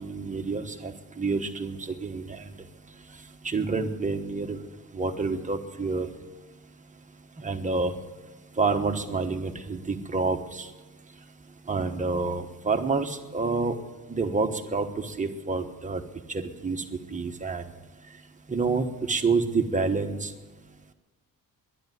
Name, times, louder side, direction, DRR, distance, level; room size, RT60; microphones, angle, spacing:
voice 1, 0.0-2.5 3.4-4.6 4.9-6.1 7.4-7.9 8.6-10.7 11.7-13.7 14.1-16.0 16.3-16.8 17.1-17.6 18.5-20.3, right 4 dB, 20° right, 5 dB, 1.2 m, -28 dB
11.5 x 11.0 x 9.5 m, 1.2 s
cardioid pair, 135°, 34 cm